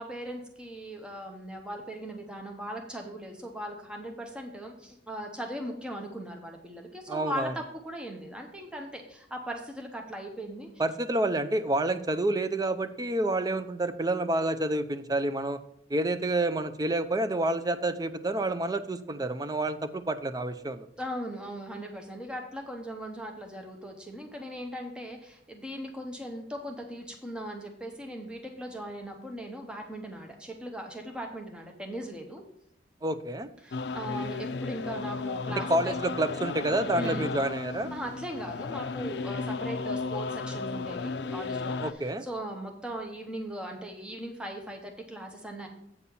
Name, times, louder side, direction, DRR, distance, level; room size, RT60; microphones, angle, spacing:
voice 1, 0.0-10.7 21.0-32.4 33.6-35.9 37.0-37.3 37.9-45.7, equal, 5° right, 2 dB, 0.9 m, -39 dB
voice 2, 7.1-7.5 10.8-15.6 15.9-20.9 33.0-33.5 35.7-37.9 41.8-42.2, right 1 dB, 20° right, 10 dB, 0.4 m, -28 dB
sound 1, 33.7-41.9, left 4 dB, 65° left, 0.4 m, -34 dB
8.3 x 4.2 x 6.9 m, 0.76 s
head